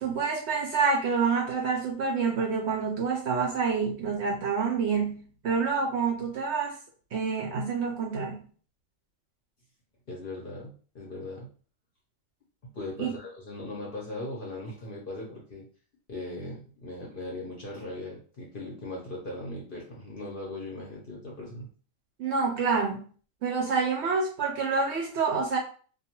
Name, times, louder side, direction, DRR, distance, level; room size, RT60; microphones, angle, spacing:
voice 1, 0.0-6.8 7.1-8.4 13.0-13.1 22.2-23.1 23.4-25.6, right 5 dB, 65° right, 1 dB, 0.7 m, -27 dB
voice 2, 10.1-11.5 12.7-15.6 16.1-21.7, left 2 dB, 50° left, -3 dB, 0.7 m, -39 dB
2.4 x 2.3 x 2.8 m, 0.41 s
omnidirectional pair, 1.5 m